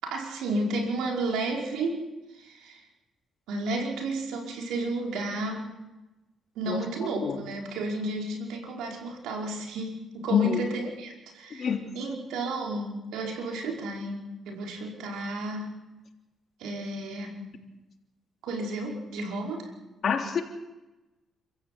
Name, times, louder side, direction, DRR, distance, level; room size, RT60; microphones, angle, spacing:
voice 1, 0.0-2.0 2.3-2.8 3.5-5.7 6.6-15.7 16.6-17.4 18.4-19.7, right 2 dB, 90° right, 0 dB, 5.3 m, -32 dB
voice 2, 20.0-20.4, left 8 dB, 50° left, 2 dB, 3.6 m, -25 dB
28.0 x 15.5 x 8.4 m, 1.0 s
cardioid pair, 90°, 0 cm